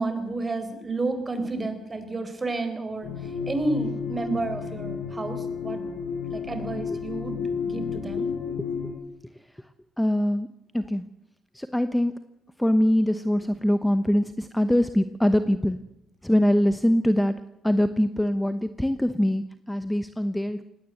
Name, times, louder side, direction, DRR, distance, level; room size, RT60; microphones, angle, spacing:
voice 1, 0.0-5.8 6.3-8.3, right 2 dB, 25° right, 9 dB, 4.2 m, -31 dB
sound 1, 3.0-8.9, left 6 dB, 90° left, 5.1 m, -32 dB
voice 2, 8.6-8.9 10.0-10.5 10.7-11.0 11.5-12.1 12.6-15.8 16.2-17.4 17.6-20.6, equal, 5° left, 11 dB, 0.9 m, -23 dB
19.0 x 17.0 x 7.9 m, 0.84 s
cardioid pair, 90°, 0 cm